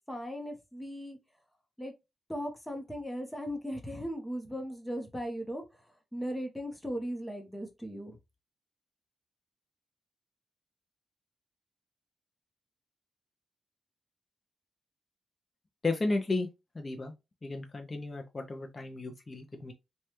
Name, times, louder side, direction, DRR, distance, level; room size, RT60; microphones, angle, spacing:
voice 1, 0.1-1.2 1.8-1.9 2.3-5.6 6.1-8.2, equal, 5° left, 0.8 m, -37 dB
voice 2, 15.8-16.5 16.7-17.1 17.4-19.7, left 2 dB, 25° left, 0.4 m, -33 dB
3.1 x 2.2 x 2.9 m
wide cardioid pair, 115°, 0 cm